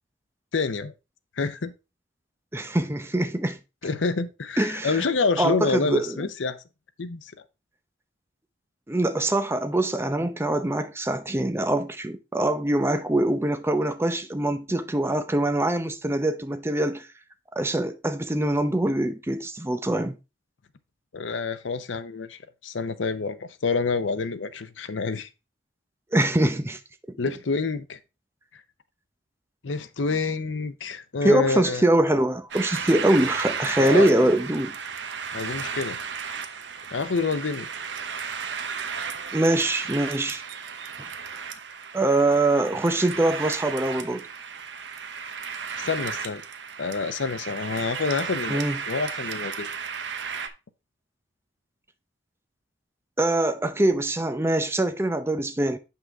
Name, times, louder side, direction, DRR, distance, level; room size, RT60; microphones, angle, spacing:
voice 1, 0.5-0.9 1.4-1.7 3.8-6.6 7.0-7.3 21.1-25.3 27.2-28.0 29.6-31.8 33.8-34.1 35.3-36.0 36.9-37.7 45.8-46.4 46.8-49.7, left 4 dB, 90° left, 0.7 m, -27 dB
voice 2, 2.5-3.6 4.6-5.1 5.4-6.3 8.9-17.1 17.5-20.2 26.1-26.8 27.1-27.2 31.2-34.8 39.3-40.4 41.0-41.1 41.9-44.3 48.5-48.8 53.2-55.8, right 1 dB, 15° right, 0.6 m, -23 dB
sound 1, 32.5-50.5, right 6 dB, 65° right, 0.8 m, -34 dB
7.6 x 5.6 x 3.5 m
head